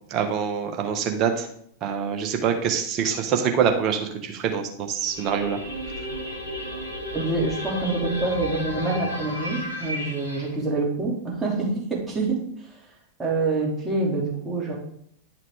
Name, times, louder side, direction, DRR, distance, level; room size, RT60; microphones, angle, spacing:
voice 1, 0.1-1.5 1.8-5.6, right 7 dB, 35° right, 4 dB, 1.4 m, -25 dB
sound 1, 5.0-10.5, equal, 90° left, 1.6 m, -33 dB
voice 2, 7.1-12.4 12.7-12.8 13.2-14.8, right 3 dB, 15° right, -4 dB, 3.0 m, -26 dB
11.0 x 5.7 x 3.6 m, 0.68 s
figure-of-eight pair, 90°, 0 cm